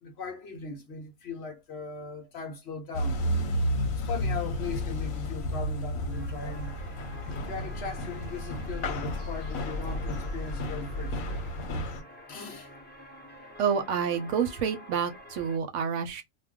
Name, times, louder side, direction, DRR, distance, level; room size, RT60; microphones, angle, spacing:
voice 1, 0.0-3.2 4.1-6.8 7.5-11.2 12.3-12.7, left 4 dB, 60° left, 0.8 m, -39 dB
sound 1, 2.9-12.0, left 1 dB, 80° left, 1.1 m, -32 dB
sound 2, 6.1-15.6, left 1 dB, 15° left, 0.4 m, -48 dB
voice 2, 13.6-16.2, right 7 dB, 70° right, 0.9 m, -28 dB
2.2 x 2.2 x 3.5 m
omnidirectional pair, 1.4 m